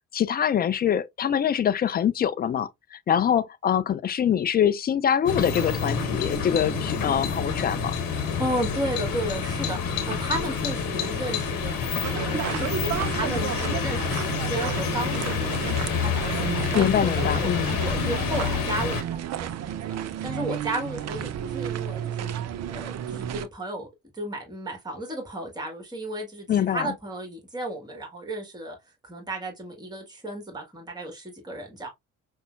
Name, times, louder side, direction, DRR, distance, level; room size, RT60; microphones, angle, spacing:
voice 1, 0.1-7.9 16.7-17.8 26.5-26.9, left 9 dB, 25° left, 0.3 m, -24 dB
sound 1, 5.3-19.0, left 6 dB, 55° left, 1.0 m, -28 dB
voice 2, 8.4-20.0 20.2-22.4 22.7-23.9 24.1-28.8 29.0-31.9, right 1 dB, 10° right, 1.4 m, -34 dB
sound 2, 12.0-23.5, right 10 dB, 40° right, 0.5 m, -32 dB
5.3 x 2.1 x 2.4 m
hypercardioid pair, 45°, 41 cm